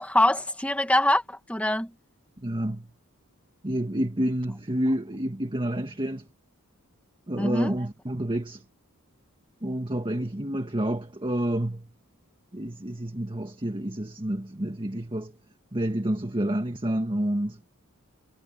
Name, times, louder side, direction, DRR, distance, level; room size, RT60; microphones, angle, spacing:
voice 1, 0.0-1.9 7.4-7.7, left 1 dB, 5° left, 2.1 m, -24 dB
voice 2, 2.4-2.9 3.6-6.3 7.3-8.6 9.6-11.9 12.5-15.3 15.7-17.6, right 1 dB, 25° right, 1.7 m, -29 dB
head